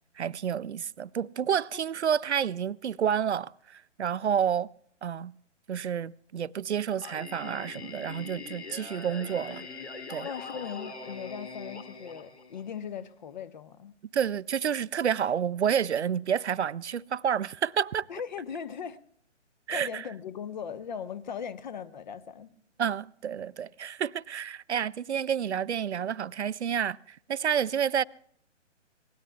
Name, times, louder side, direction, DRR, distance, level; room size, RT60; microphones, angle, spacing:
voice 1, 0.2-4.7 5.0-5.3 5.7-9.7 10.1-10.3 14.1-18.1 19.7-20.0 22.8-28.0, right 8 dB, 65° right, 0.5 m, -29 dB
Singing, 7.0-13.0, left 4 dB, 65° left, 3.0 m, -42 dB
voice 2, 10.2-13.9 18.1-19.0 19.7-22.5, left 7 dB, 40° left, 0.9 m, -39 dB
26.0 x 20.0 x 2.3 m
figure-of-eight pair, 135°, 36 cm